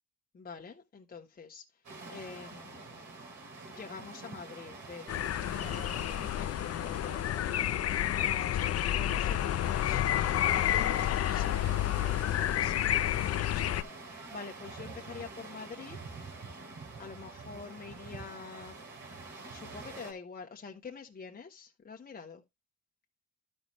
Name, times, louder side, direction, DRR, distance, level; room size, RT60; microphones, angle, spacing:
voice 1, 0.3-1.6 2.1-3.1 3.7-16.0 17.0-18.8 19.5-22.4, left 5 dB, 30° left, 1.1 m, -46 dB
sound 1, 1.8-20.1, right 3 dB, 75° right, 3.0 m, -47 dB
sound 2, 5.1-13.8, left 12 dB, 55° left, 0.5 m, -30 dB
12.0 x 5.4 x 3.2 m
cardioid pair, 90°, 30 cm